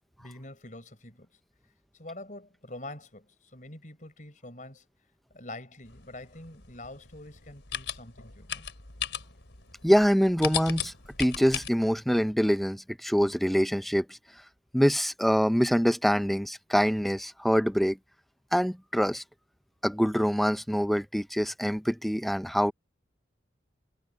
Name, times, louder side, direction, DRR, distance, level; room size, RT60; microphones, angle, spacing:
voice 1, 0.2-1.3 1.9-4.8 5.3-8.7, left 2 dB, 45° left, 5.0 m, -45 dB
sound 1, 5.8-11.7, left 9 dB, 90° left, 3.9 m, -37 dB
voice 2, 9.8-10.9 11.2-14.1 14.7-18.0 18.5-19.2 19.8-22.7, equal, ahead, 0.7 m, -25 dB
head